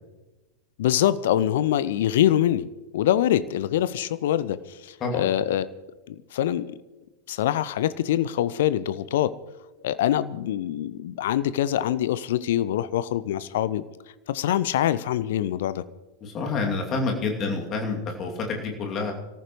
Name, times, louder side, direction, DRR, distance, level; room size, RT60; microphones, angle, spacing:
voice 1, 0.8-2.7 2.9-5.7 6.1-6.8 7.3-9.3 9.8-13.8 14.3-15.8, left 11 dB, 55° left, 16 dB, 0.6 m, -24 dB
voice 2, 5.0-5.3 16.2-19.1, left 3 dB, 30° left, 1 dB, 2.6 m, -28 dB
26.0 x 14.0 x 3.1 m, 1.1 s
figure-of-eight pair, 90°, 0 cm